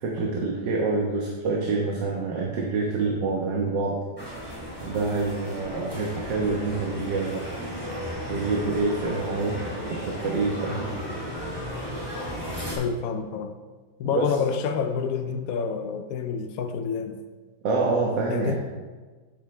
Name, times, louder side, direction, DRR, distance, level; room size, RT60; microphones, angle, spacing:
voice 1, 0.0-4.0 4.8-7.4 8.3-9.6 10.0-10.9 14.1-14.3 17.6-18.6, right 3 dB, 70° right, -2 dB, 1.8 m, -26 dB
sound 1, 4.2-12.8, equal, 10° right, 2.7 m, -34 dB
voice 2, 12.8-13.5 14.0-17.2 18.3-18.6, left 6 dB, 65° left, 7 dB, 0.9 m, -28 dB
12.0 x 7.9 x 3.3 m, 1.4 s
omnidirectional pair, 2.1 m